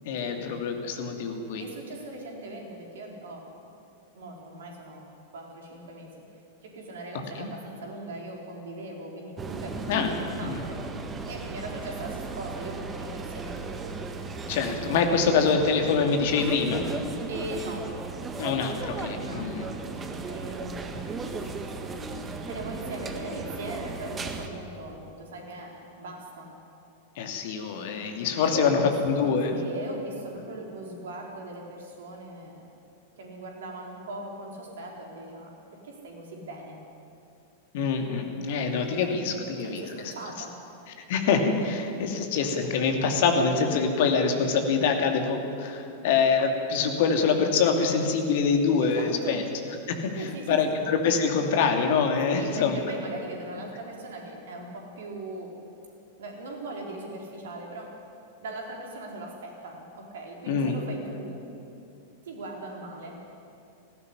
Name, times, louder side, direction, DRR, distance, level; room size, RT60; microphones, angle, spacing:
voice 1, 0.0-1.6 7.3-7.5 9.9-10.1 10.4-10.6 14.4-16.8 18.4-19.7 27.2-29.6 37.7-40.1 41.1-49.4 49.9-52.8 60.5-60.8, left 5 dB, 50° left, 4 dB, 2.5 m, -25 dB
voice 2, 1.6-3.5 4.1-6.2 6.6-10.8 11.3-13.9 15.2-15.3 17.3-18.0 19.1-21.1 22.4-26.5 28.4-32.6 33.2-36.8 39.0-40.6 48.8-49.4 50.2-50.8 52.3-55.6 56.2-58.0 58.4-61.4 62.2-63.3, right 2 dB, 60° right, 0 dB, 4.3 m, -39 dB
sound 1, 9.4-24.5, right 4 dB, 20° right, 1.8 m, -36 dB
19.0 x 15.5 x 9.9 m, 2.7 s
figure-of-eight pair, 95°, 0 cm